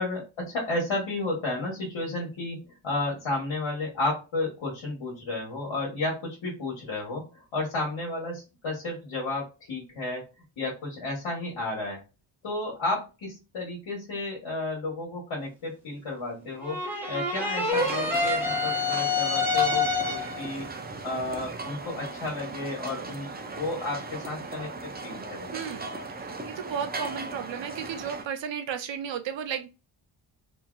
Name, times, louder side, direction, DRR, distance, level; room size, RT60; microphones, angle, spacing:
voice 1, 0.0-10.2 10.6-12.0 12.4-16.8 17.1-20.7 21.0-23.3 23.6-24.7 25.0-25.5, left 2 dB, 70° left, 1.5 m, -32 dB
sound 1, 16.6-20.5, left 3 dB, 5° right, 1.2 m, -27 dB
sound 2, 17.7-28.2, right 3 dB, 20° right, 0.5 m, -38 dB
voice 2, 25.5-25.9 26.1-29.7, right 8 dB, 60° right, 0.7 m, -34 dB
2.8 x 2.6 x 2.4 m
cardioid pair, 75°, 49 cm